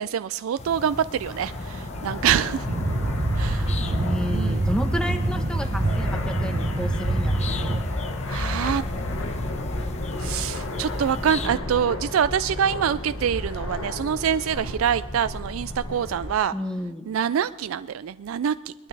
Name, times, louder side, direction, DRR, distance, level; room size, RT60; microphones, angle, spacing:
voice 1, 0.0-2.7 3.4-3.8 4.3-4.7 8.3-8.8 10.2-16.5 17.1-18.7, right 8 dB, 85° right, 14 dB, 0.4 m, -25 dB
sound 1, 0.6-11.5, left 2 dB, 35° left, 0.9 m, -38 dB
Fixed-wing aircraft airplane, 1.2-16.3, left 1 dB, 90° left, 1.3 m, -32 dB
sound 2, 2.7-7.8, right 2 dB, 45° right, 0.9 m, -25 dB
voice 2, 3.8-7.4 16.5-17.1, left 1 dB, 5° left, 4 dB, 1.0 m, -31 dB
21.5 x 12.5 x 3.4 m, 1.1 s
head